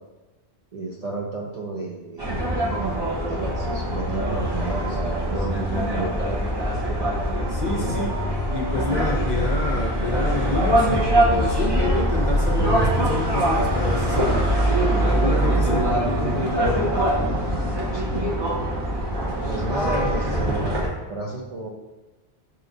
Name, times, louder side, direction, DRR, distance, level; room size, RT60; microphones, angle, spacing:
voice 1, 0.7-2.5 3.3-6.1 17.9-18.3 19.4-20.8 21.1-21.7, right 2 dB, 50° right, -3 dB, 0.4 m, -32 dB
sound 1, 2.2-20.9, right 1 dB, 25° right, 0.9 m, -23 dB
voice 2, 7.5-8.2 8.5-14.6 15.0-16.9, left 3 dB, 50° left, -1 dB, 0.6 m, -28 dB
5.9 x 2.9 x 2.6 m, 1.1 s
omnidirectional pair, 1.1 m